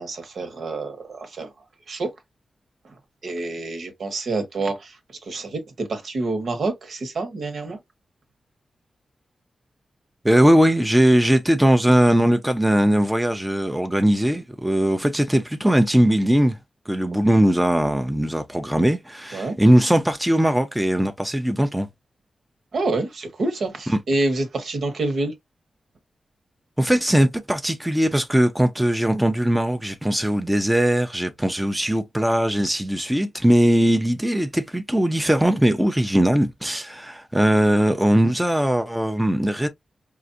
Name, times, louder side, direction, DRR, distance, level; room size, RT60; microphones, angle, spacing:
voice 1, 0.0-1.5 1.9-2.1 3.2-5.0 5.2-7.8 19.3-19.6 22.7-25.3, right 2 dB, 70° right, 1.3 m, -27 dB
voice 2, 10.2-16.6 16.9-21.9 23.9-24.0 26.8-39.7, right 1 dB, 5° right, 0.6 m, -20 dB
4.7 x 2.5 x 2.6 m
cardioid pair, 85°, 0 cm